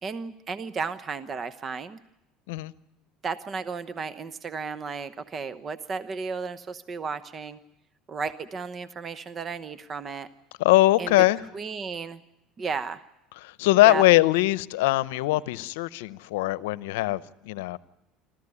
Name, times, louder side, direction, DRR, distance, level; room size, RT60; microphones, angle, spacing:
voice 1, 0.0-2.0 3.2-7.6 8.1-10.3 11.0-11.1 11.5-12.2 12.6-13.0 13.9-14.0, right 5 dB, 35° right, 1.0 m, -34 dB
voice 2, 10.6-11.4 13.4-17.8, left 17 dB, 80° left, 0.7 m, -21 dB
26.0 x 14.5 x 9.8 m
hypercardioid pair, 85°, 0 cm